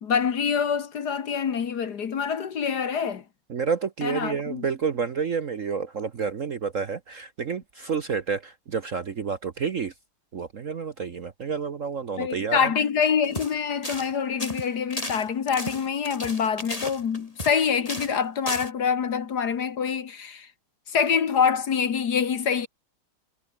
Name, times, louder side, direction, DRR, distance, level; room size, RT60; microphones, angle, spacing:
voice 1, 0.0-3.2 4.0-4.7 12.2-20.5 20.9-22.7, left 7 dB, 55° left, 1.8 m, -25 dB
voice 2, 3.5-9.9 10.3-12.7, right 6 dB, 45° right, 1.1 m, -29 dB
sound 1, 13.2-13.5 13.8-14.1 14.4-17.6 17.9-18.2 18.5-18.7, left 1 dB, 15° left, 7.5 m, -34 dB
omnidirectional pair, 2.3 m